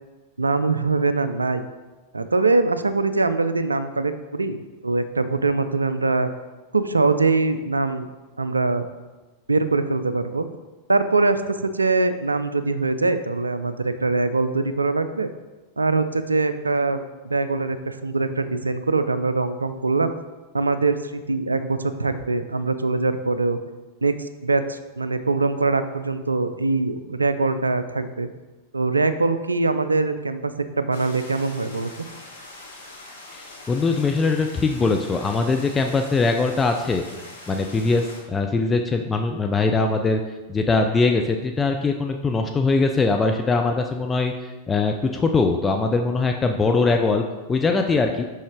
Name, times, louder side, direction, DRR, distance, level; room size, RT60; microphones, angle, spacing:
voice 1, 0.4-1.7 2.1-4.6 4.8-6.3 6.7-8.1 8.4-8.9 9.5-10.5 10.9-15.3 15.8-20.1 20.5-23.6 24.0-28.3 28.7-32.1, right 3 dB, 80° right, 11 dB, 0.4 m, -23 dB
sound 1, 30.9-38.2, left 2 dB, 70° left, 1.2 m, -43 dB
voice 2, 33.3-37.0 37.5-40.2 40.5-44.3 44.7-47.2 47.5-48.2, left 3 dB, 15° left, 4 dB, 0.4 m, -21 dB
6.2 x 5.7 x 3.6 m, 1.2 s
figure-of-eight pair, 90°, 0 cm